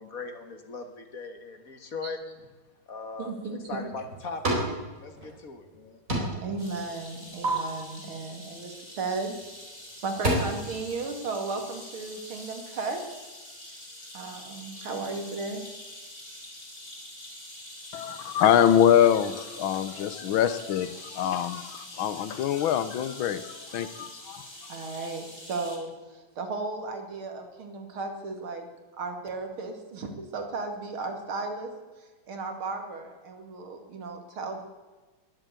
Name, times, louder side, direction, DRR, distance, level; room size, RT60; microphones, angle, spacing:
voice 1, 0.0-2.2 2.9-3.3 3.7-4.6 5.0-6.0 6.4-6.6, left 4 dB, 45° left, 1.9 m, -39 dB
voice 2, 3.2-3.9 6.3-9.3 10.0-13.0 14.1-15.6 24.7-28.7 29.0-31.7 32.0-34.6, right 3 dB, 90° right, 3.0 m, -35 dB
sound 1, 3.7-4.8 5.1-5.8 6.1-6.5 6.9-7.5 9.3-9.5 9.9-10.3, right 1 dB, 40° right, 4.5 m, -30 dB
sound 2, 6.6-25.8, left 1 dB, 25° left, 4.0 m, -45 dB
voice 3, 17.9-24.4, left 9 dB, 75° left, 1.6 m, -24 dB
21.5 x 7.9 x 8.2 m
omnidirectional pair, 2.2 m